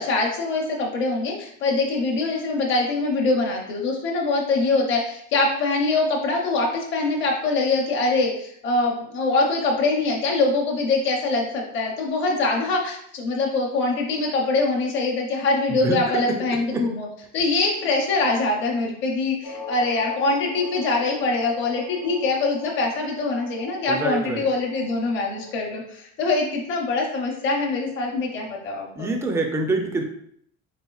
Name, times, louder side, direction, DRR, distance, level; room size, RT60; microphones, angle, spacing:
voice 1, 0.0-17.1 17.3-29.1, left 3 dB, 35° left, -1 dB, 0.8 m, -23 dB
voice 2, 15.7-16.4 16.7-16.8 23.9-24.5 29.0-30.0, right 2 dB, 10° right, 3 dB, 0.3 m, -25 dB
sound 1, 19.4-25.7, left 3 dB, 75° left, 1.0 m, -40 dB
4.2 x 3.8 x 2.3 m, 0.67 s
cardioid pair, 160°, 33 cm